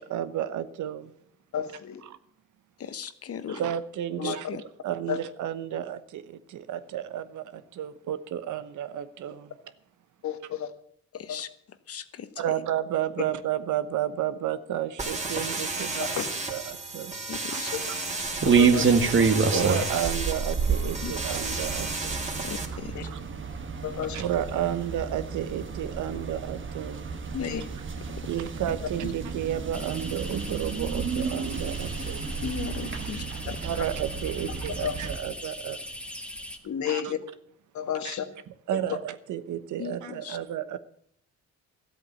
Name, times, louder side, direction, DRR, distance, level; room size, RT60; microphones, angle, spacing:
voice 1, 0.1-1.1 3.5-9.5 12.4-16.1 16.5-17.6 18.7-19.0 19.5-22.3 23.1-23.2 24.1-27.1 28.3-32.3 33.3-35.8 36.8-37.0 38.0-38.1 38.7-40.8, right 11 dB, 75° right, 13 dB, 1.1 m, -32 dB
voice 2, 1.5-2.0 4.2-4.4 5.1-5.2 10.2-10.7 11.3-11.4 16.0-16.3 18.6-18.9 19.5-19.8 22.9-23.0 23.8-24.2 27.3-27.7 34.8-34.9 36.6-37.2 37.7-38.3 38.7-39.0, left 9 dB, 70° left, 9 dB, 1.7 m, -31 dB
voice 3, 2.8-3.6 4.2-4.6 11.1-11.5 11.9-12.3 17.3-17.7 21.0-21.1 22.4-23.1 27.4-27.6 28.1-28.3 29.0-29.1 32.4-33.6 39.8-40.4, left 8 dB, 50° left, 14 dB, 1.1 m, -37 dB
sound 1, 15.0-22.6, right 3 dB, 25° right, 2.9 m, -33 dB
sound 2, 18.2-35.2, right 5 dB, 40° right, 1.5 m, -29 dB
sound 3, 29.7-36.6, equal, 5° left, 1.6 m, -39 dB
13.5 x 8.2 x 8.3 m, 0.67 s
cardioid pair, 90°, 30 cm